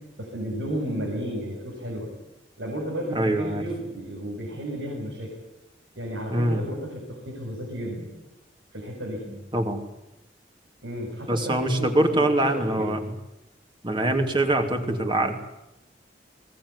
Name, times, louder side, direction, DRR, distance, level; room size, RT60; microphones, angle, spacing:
voice 1, 0.2-2.1 2.6-5.3 6.0-8.1 8.7-9.2 10.8-12.9, equal, 90° right, -3 dB, 7.3 m, -33 dB
voice 2, 3.1-3.6 6.3-6.6 9.5-9.8 11.3-13.0 13.8-15.4, right 1 dB, 25° right, 5 dB, 2.9 m, -23 dB
22.0 x 20.0 x 9.9 m, 0.93 s
head